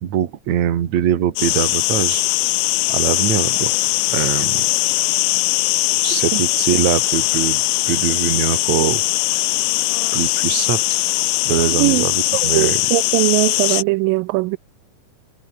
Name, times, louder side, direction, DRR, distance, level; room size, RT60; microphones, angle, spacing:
voice 1, 0.0-2.2 2.9-3.7 4.1-4.7 6.0-9.0 9.3-9.4 10.1-10.8 11.5-12.8 13.7-13.8, right 10 dB, 55° right, 2.8 m, -22 dB
sound 1, 1.4-13.8, left 20 dB, 80° left, 2.3 m, -20 dB
voice 2, 12.3-14.6, right 23 dB, 80° right, 2.2 m, -20 dB
omnidirectional pair, 4.2 m